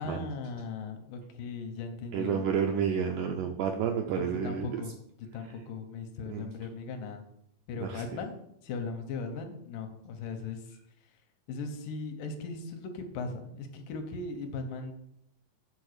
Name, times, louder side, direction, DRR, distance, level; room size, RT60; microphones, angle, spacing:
voice 1, 0.0-2.5 4.2-4.9 5.2-7.2 7.7-8.4 8.6-10.8 11.5-14.9, left 4 dB, 75° left, 5 dB, 2.3 m, -38 dB
voice 2, 2.1-4.8 6.3-6.4 7.8-8.0, right 7 dB, 80° right, 4 dB, 1.8 m, -30 dB
7.2 x 3.8 x 6.5 m, 0.75 s
omnidirectional pair, 4.1 m